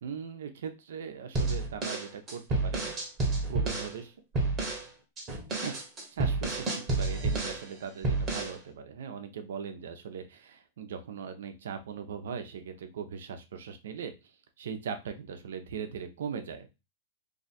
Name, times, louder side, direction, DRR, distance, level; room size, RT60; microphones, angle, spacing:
voice 1, 0.0-3.0 3.4-4.1 5.6-5.7 6.1-14.1 14.6-16.7, right 6 dB, 80° right, 7 dB, 0.7 m, -39 dB
sound 1, 1.3-3.9 4.3-4.8 5.2-7.6 8.0-8.6, right 2 dB, 20° right, 1.1 m, -30 dB
2.8 x 2.4 x 4.2 m, 0.26 s
supercardioid pair, 150°, 0 cm